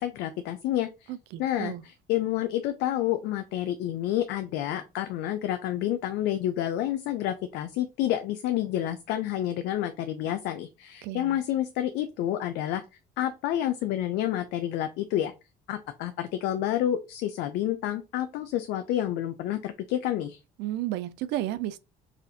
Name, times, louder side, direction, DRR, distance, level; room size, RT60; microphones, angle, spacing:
voice 1, 0.0-1.1 1.4-12.8 13.2-15.3 15.7-20.4, left 12 dB, 85° left, 0.4 m, -29 dB
voice 2, 1.1-1.8 11.0-11.4 20.6-21.8, right 14 dB, 85° right, 0.4 m, -32 dB
4.2 x 2.4 x 2.6 m
cardioid pair, 110°, 17 cm